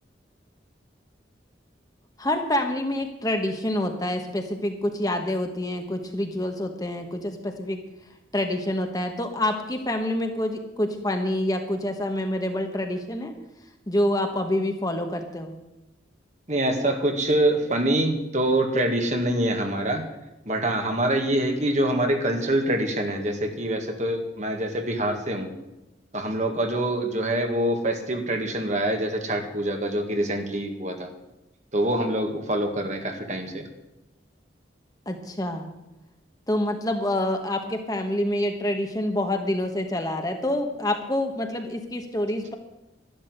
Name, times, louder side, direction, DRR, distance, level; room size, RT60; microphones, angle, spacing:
voice 1, 2.2-7.8 8.3-13.3 13.9-15.5 35.1-35.7 36.5-42.5, left 1 dB, 20° left, 5 dB, 1.3 m, -27 dB
voice 2, 16.5-20.1 20.5-25.5 26.1-31.1 31.7-33.7, right 1 dB, 40° right, 4 dB, 1.9 m, -25 dB
12.0 x 12.0 x 7.9 m, 0.97 s
head